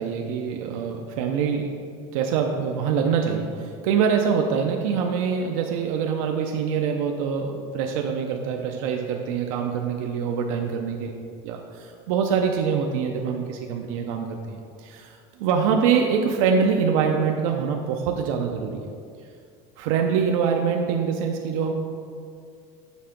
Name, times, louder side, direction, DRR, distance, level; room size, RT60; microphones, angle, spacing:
voice 1, 0.0-1.7 2.1-11.6 12.1-18.9 19.8-21.7, right 6 dB, 85° right, 2 dB, 0.6 m, -24 dB
7.2 x 3.8 x 5.7 m, 2.3 s
cardioid pair, 160°, 17 cm